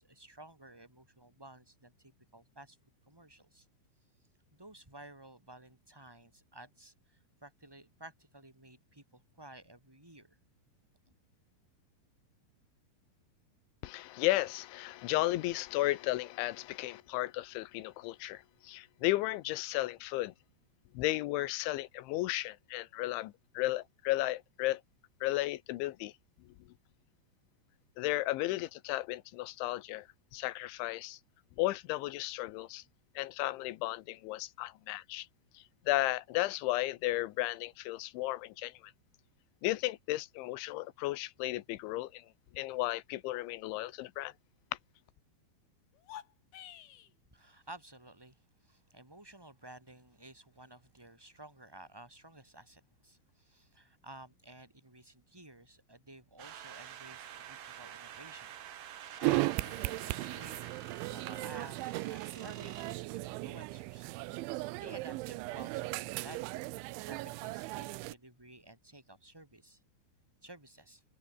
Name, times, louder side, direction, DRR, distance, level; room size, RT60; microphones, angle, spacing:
voice 1, 0.0-2.8 3.1-3.7 4.5-10.4 47.3-58.6 59.1-69.8 70.4-71.0, right 1 dB, 5° right, 5.4 m, -53 dB
voice 2, 13.8-20.3 20.9-24.8 25.2-26.1 28.0-30.1 30.3-31.2 31.6-32.8 33.2-35.3 35.5-38.7 39.6-42.2 42.5-44.3, left 18 dB, 85° left, 3.4 m, -34 dB
sound 1, 45.9-47.1, left 11 dB, 65° left, 3.6 m, -49 dB
sound 2, 56.4-62.9, right 10 dB, 55° right, 3.1 m, -47 dB
sound 3, 59.2-68.1, right 20 dB, 85° right, 3.1 m, -37 dB
omnidirectional pair, 5.3 m